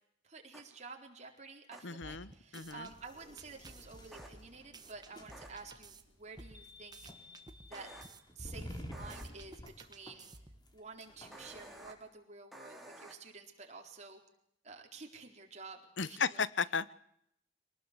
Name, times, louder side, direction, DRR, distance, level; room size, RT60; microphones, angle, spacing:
voice 1, 0.2-7.0 7.6-7.9 8.4-10.3 10.7-14.2 14.6-16.4, right 4 dB, 40° right, 2 dB, 4.1 m, -51 dB
sound 1, 0.5-0.6 1.7-1.8 4.1-4.3 5.3-5.5 7.7-8.0 8.9-9.2 11.3-11.9 12.5-13.1, right 1 dB, ahead, 3.8 m, -51 dB
voice 2, 1.8-2.9 16.0-16.9, left 5 dB, 85° left, 18 dB, 1.0 m, -35 dB
sound 2, 2.0-2.9 3.4-6.0 6.4-8.2 8.6-10.7, right 2 dB, 25° right, 1.7 m, -54 dB
sound 3, 2.6-11.9, equal, 25° left, 3.5 m, -51 dB
25.0 x 19.0 x 8.3 m, 0.73 s
head